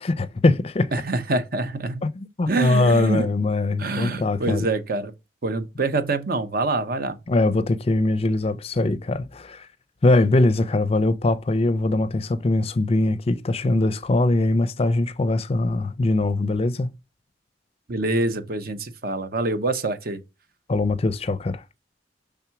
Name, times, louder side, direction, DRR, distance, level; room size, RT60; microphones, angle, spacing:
voice 1, 0.0-0.9 2.0-4.7 7.3-9.7 10.0-16.9 20.7-21.6, left 2 dB, 35° left, 0.5 m, -22 dB
voice 2, 0.9-2.0 2.5-3.3 3.8-5.1 5.4-7.2 17.9-20.2, right 2 dB, 55° right, 0.9 m, -25 dB
5.9 x 3.6 x 5.7 m
head